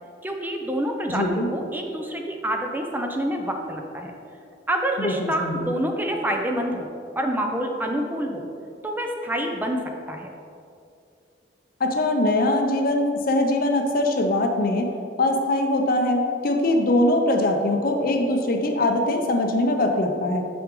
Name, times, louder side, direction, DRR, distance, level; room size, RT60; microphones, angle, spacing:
voice 1, 0.2-4.1 4.7-6.9 7.2-8.5 8.8-9.8 10.1-10.3, right 1 dB, 10° right, 2 dB, 0.5 m, -27 dB
voice 2, 1.1-1.5 5.0-5.7 11.8-14.9 15.2-20.4, left 1 dB, 55° left, 4 dB, 0.7 m, -22 dB
6.2 x 5.9 x 3.7 m, 2.5 s
head